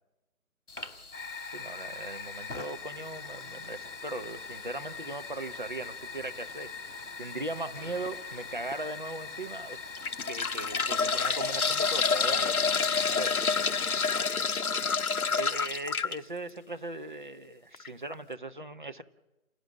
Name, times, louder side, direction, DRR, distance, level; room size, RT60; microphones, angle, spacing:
Fire, 0.7-14.6, left 4 dB, 55° left, 2.4 m, -42 dB
voice 1, 1.5-13.4 14.9-19.0, right 2 dB, 35° right, 7 dB, 0.9 m, -39 dB
sound 1, 7.8-8.1 8.7-8.8 9.8-16.2 17.7-17.9 18.1-18.2, left 5 dB, 80° left, 0.8 m, -28 dB
28.5 x 18.5 x 7.8 m, 1.0 s
figure-of-eight pair, 160°, 44 cm